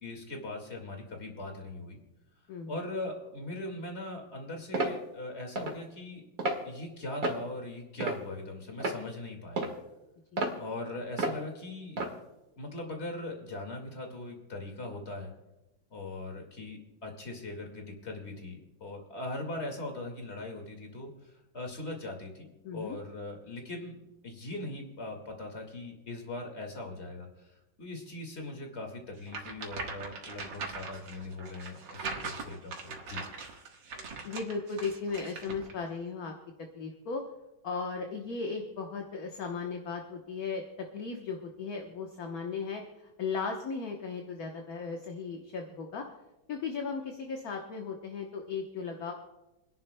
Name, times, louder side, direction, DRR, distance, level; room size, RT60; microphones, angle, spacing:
voice 1, 0.0-2.0 2.7-6.2 6.6-9.7 10.6-12.0 12.6-15.3 15.9-24.0 24.2-33.2, left 2 dB, 35° left, 3 dB, 2.2 m, -40 dB
sound 1, 4.7-5.0 5.6-5.8 6.4-6.6 7.2-7.5 8.0-8.4 8.8-9.0 9.6-9.8 10.4-10.6 11.2-11.4 12.0-12.1, right 2 dB, 45° right, 2.1 m, -31 dB
voice 2, 22.6-23.0 34.2-36.3 36.7-37.2 37.6-40.6 40.9-42.8 43.2-46.0 46.5-49.1, left 4 dB, 55° left, 2 dB, 1.4 m, -36 dB
sound 2, 29.3-35.7, right 4 dB, 70° right, 2.2 m, -41 dB
28.0 x 11.0 x 2.2 m, 0.98 s
omnidirectional pair, 2.1 m